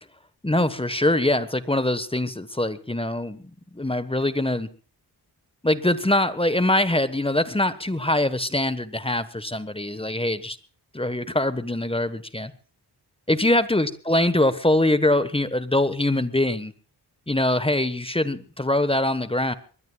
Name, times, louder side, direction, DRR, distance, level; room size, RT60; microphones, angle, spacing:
voice 1, 0.4-3.4 3.7-4.7 5.6-10.6 10.9-12.5 13.3-16.7 17.3-19.5, left 1 dB, 15° left, 13 dB, 1.3 m, -23 dB
22.5 x 21.0 x 2.4 m, 0.40 s
wide cardioid pair, 85°, 42 cm